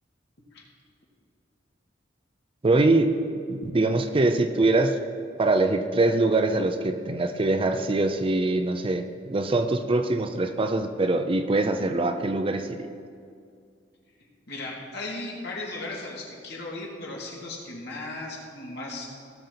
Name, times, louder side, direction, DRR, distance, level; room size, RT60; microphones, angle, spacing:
voice 1, 2.6-3.1 3.5-5.0 5.4-12.9, right 2 dB, 30° right, 8 dB, 0.5 m, -23 dB
voice 2, 14.5-19.1, left 2 dB, 60° left, -3 dB, 2.3 m, -36 dB
16.5 x 6.5 x 4.0 m, 2.3 s
head